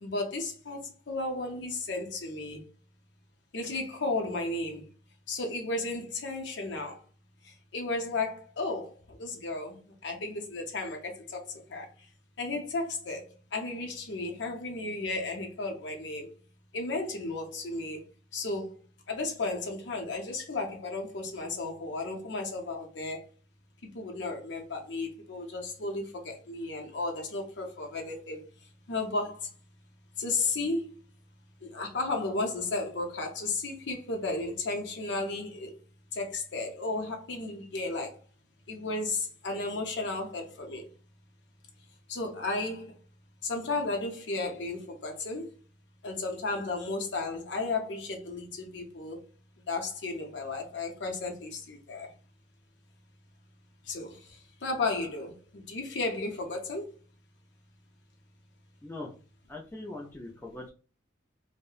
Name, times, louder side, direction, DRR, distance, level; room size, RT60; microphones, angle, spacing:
voice 1, 0.0-2.6 3.5-4.8 5.3-7.0 7.7-11.9 12.4-13.2 13.5-16.3 16.7-18.0 18.3-18.7 19.1-23.3 23.9-28.4 28.9-29.5 30.2-30.9 31.6-35.7 36.1-38.2 38.7-40.8 42.1-42.9 43.4-45.5 46.0-49.2 49.7-52.1 53.9-54.2 54.6-56.9, left 3 dB, 65° left, 0.6 m, -34 dB
voice 2, 58.8-59.1 59.5-60.7, left 2 dB, 10° left, 0.4 m, -41 dB
2.7 x 2.1 x 2.3 m
head